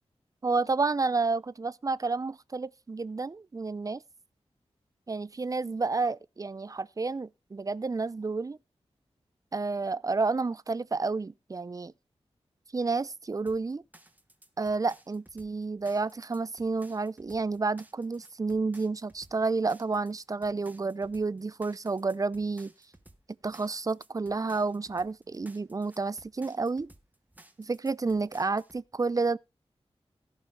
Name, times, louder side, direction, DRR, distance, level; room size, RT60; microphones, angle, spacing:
voice 1, 0.4-4.0 5.1-8.6 9.5-11.9 12.7-13.8 14.6-22.7 23.4-26.9 27.6-29.4, right 3 dB, 30° right, 0.5 m, -30 dB
sound 1, 13.5-28.8, right 1 dB, 15° right, 1.2 m, -57 dB
16.5 x 5.6 x 4.3 m
wide cardioid pair, 85°, 11 cm